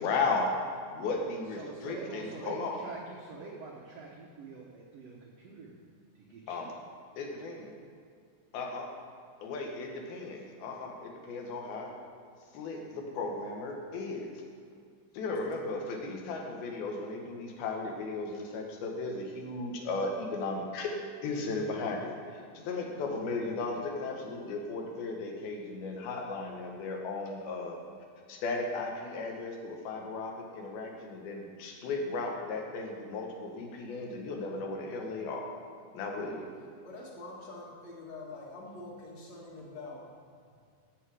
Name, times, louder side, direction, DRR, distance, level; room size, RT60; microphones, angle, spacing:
voice 1, 0.0-0.5 0.9-2.8 6.5-6.6 7.2-7.7 8.5-8.9 9.4-11.9 12.5-14.3 15.1-20.9 21.2-27.8 28.3-35.5 35.9-36.5, left 3 dB, 85° left, 1 dB, 3.1 m, -35 dB
voice 2, 1.5-5.8 6.1-6.7, right 4 dB, 85° right, -2 dB, 1.4 m, -45 dB
voice 3, 36.8-40.0, left 2 dB, 50° left, -3 dB, 2.5 m, -45 dB
14.0 x 6.8 x 4.8 m, 2.3 s
omnidirectional pair, 4.3 m